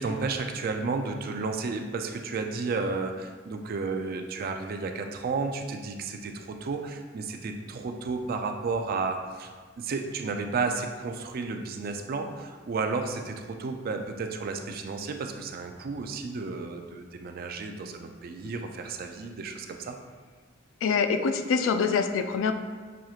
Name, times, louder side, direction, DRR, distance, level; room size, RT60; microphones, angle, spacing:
voice 1, 0.0-9.5 9.8-20.0, right 4 dB, 50° right, 5 dB, 0.3 m, -32 dB
voice 2, 20.8-22.5, left 5 dB, 75° left, 7 dB, 0.3 m, -25 dB
6.2 x 2.8 x 2.4 m, 1.5 s
head